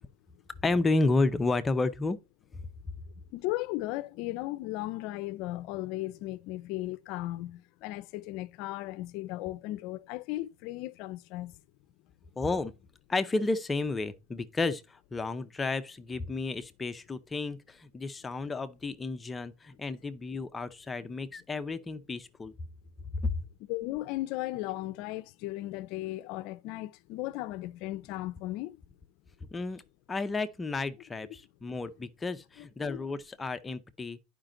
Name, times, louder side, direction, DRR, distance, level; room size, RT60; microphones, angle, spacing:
voice 1, 0.6-2.2 2.5-2.6 12.4-12.7 13.1-22.5 23.1-23.3 29.4-29.8 30.1-34.2, left 3 dB, 15° left, 0.6 m, -31 dB
voice 2, 3.3-11.5 23.7-28.8 32.8-33.0, left 17 dB, 55° left, 0.5 m, -36 dB
10.5 x 5.1 x 3.8 m
supercardioid pair, 145°, 0 cm